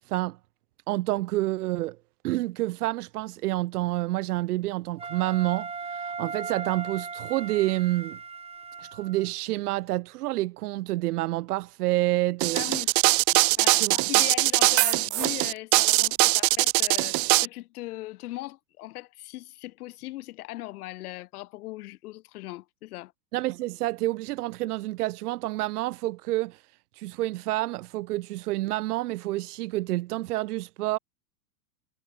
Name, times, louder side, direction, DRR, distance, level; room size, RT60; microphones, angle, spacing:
voice 1, 0.1-0.4 0.9-2.0 2.2-8.2 8.8-12.7 13.7-14.0 23.3-26.6 27.0-31.0, right 18 dB, 60° right, 1.5 m, -28 dB
Wind instrument woodwind instrument, 5.0-9.3, right 5 dB, 10° right, 3.8 m, -37 dB
sound 1, 12.4-17.5, right 27 dB, 35° right, 1.7 m, -21 dB
voice 2, 12.5-12.9 13.6-23.1, left 18 dB, 60° left, 6.4 m, -39 dB
supercardioid pair, 145°, 50 cm